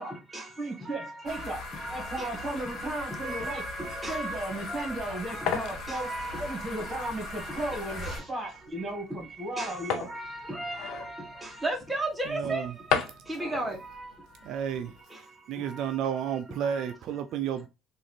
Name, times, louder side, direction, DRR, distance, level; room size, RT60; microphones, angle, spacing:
voice 1, 0.0-0.5 0.8-1.4 1.7-2.3 3.1-5.5 5.9-7.1 7.5-7.6 7.9-8.2 9.6-12.7 13.3-14.1 15.6-15.9 16.6-16.9, right 2 dB, 10° right, 1.1 m, -36 dB
voice 2, 0.6-3.7 4.1-6.1 6.4-10.1, right 1 dB, 30° right, 1.7 m, -35 dB
sound 1, 1.3-8.2, left 2 dB, 45° left, 1.4 m, -39 dB
sound 2, 4.6-15.0, left 8 dB, 75° left, 0.5 m, -37 dB
voice 3, 12.3-12.7 14.4-14.9 15.5-17.7, right 8 dB, 70° right, 0.3 m, -31 dB
3.7 x 2.4 x 3.2 m
cardioid pair, 95°, 0 cm